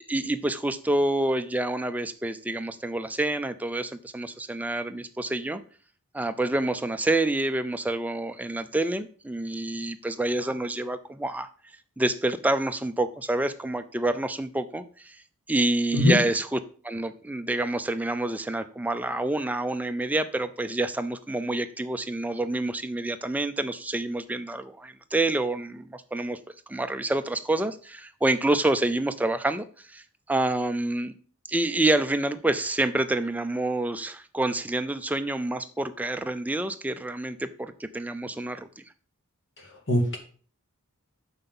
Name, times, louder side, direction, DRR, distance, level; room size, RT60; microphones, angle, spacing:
voice 1, 0.1-5.6 6.1-11.5 12.0-15.2 15.5-16.6 16.8-26.4 26.7-31.1 31.5-38.8, right 2 dB, 5° right, 9 dB, 0.4 m, -27 dB
voice 2, 39.6-40.2, left 1 dB, 55° left, 2 dB, 2.1 m, -23 dB
6.8 x 5.7 x 5.4 m, 0.42 s
head